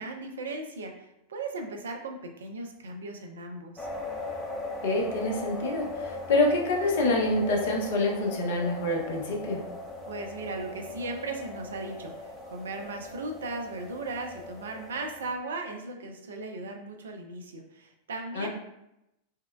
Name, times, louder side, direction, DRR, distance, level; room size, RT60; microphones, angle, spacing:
voice 1, 0.0-3.9 10.1-18.5, right 2 dB, 65° right, 4 dB, 0.5 m, -37 dB
sound 1, 3.8-15.3, left 2 dB, 15° left, 0.7 m, -39 dB
voice 2, 4.8-9.6 18.3-18.5, left 2 dB, 55° left, 0 dB, 0.7 m, -26 dB
4.6 x 2.2 x 2.2 m, 0.86 s
figure-of-eight pair, 90°, 0 cm